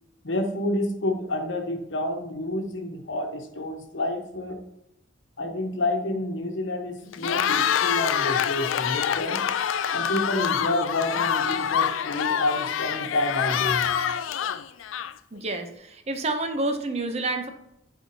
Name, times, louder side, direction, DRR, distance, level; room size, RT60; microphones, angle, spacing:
voice 1, 0.2-4.6 5.4-9.4 9.9-13.9, left 1 dB, 70° left, 3 dB, 1.1 m, -29 dB
Cheering, 7.1-15.4, left 8 dB, 85° left, 0.4 m, -26 dB
voice 2, 15.3-17.5, right 2 dB, 35° right, 6 dB, 0.6 m, -29 dB
8.5 x 4.4 x 2.7 m, 0.83 s
head